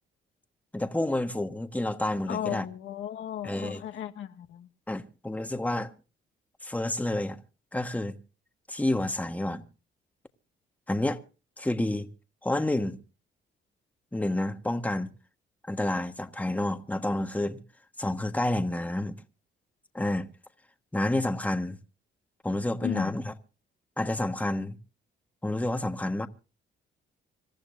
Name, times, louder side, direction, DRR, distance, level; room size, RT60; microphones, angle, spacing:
voice 1, 0.7-2.6 3.4-3.8 4.9-5.9 6.6-7.4 7.7-8.2 8.7-9.6 10.9-11.2 11.6-12.1 12.4-13.0 14.1-15.1 15.6-17.6 18.0-19.2 19.9-20.3 20.9-21.8 22.4-23.3 24.0-24.8 25.4-26.3, left 1 dB, 5° left, 1.4 m, -29 dB
voice 2, 2.3-4.7 22.8-23.2, left 10 dB, 75° left, 1.4 m, -35 dB
26.0 x 14.0 x 2.6 m
cardioid pair, 90°, 20 cm